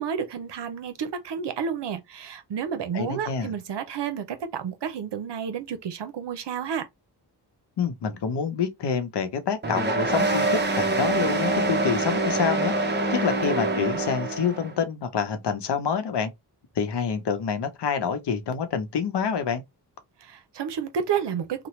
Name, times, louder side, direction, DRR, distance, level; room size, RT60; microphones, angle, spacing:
voice 1, 0.0-6.8 20.2-21.7, right 7 dB, 80° right, 0.7 m, -31 dB
voice 2, 2.9-3.5 7.8-12.7 13.1-16.3 16.7-19.6, left 6 dB, 75° left, 0.8 m, -27 dB
sound 1, 9.6-14.7, right 2 dB, 25° right, 0.8 m, -25 dB
3.0 x 2.2 x 3.0 m
wide cardioid pair, 90°, 41 cm